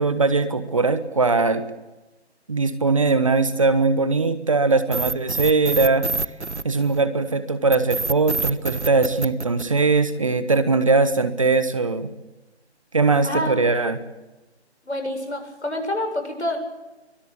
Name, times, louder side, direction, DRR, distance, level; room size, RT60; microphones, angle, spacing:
voice 1, 0.0-1.7 2.5-6.1 6.6-12.1 12.9-14.0, right 3 dB, 30° right, 13 dB, 1.2 m, -20 dB
sound 1, 4.9-7.2 7.7-10.2, right 3 dB, 85° right, 1.3 m, -27 dB
voice 2, 13.2-13.6 14.9-16.6, left 1 dB, 80° left, 4 dB, 7.8 m, -27 dB
23.5 x 20.5 x 8.4 m, 1.1 s
figure-of-eight pair, 160°, 34 cm